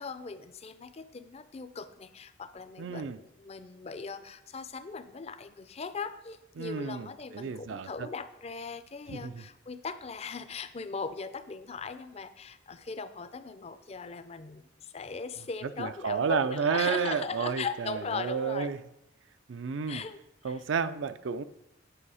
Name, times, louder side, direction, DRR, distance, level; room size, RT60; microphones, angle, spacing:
voice 1, 0.0-18.7 19.9-20.2 20.4-20.6, left 5 dB, 35° left, 12 dB, 0.4 m, -39 dB
voice 2, 2.8-3.2 6.6-8.1 9.1-9.4 15.8-18.8 19.5-20.0 20.4-21.4, right 6 dB, 75° right, 13 dB, 0.4 m, -31 dB
9.9 x 5.4 x 4.9 m, 0.86 s
head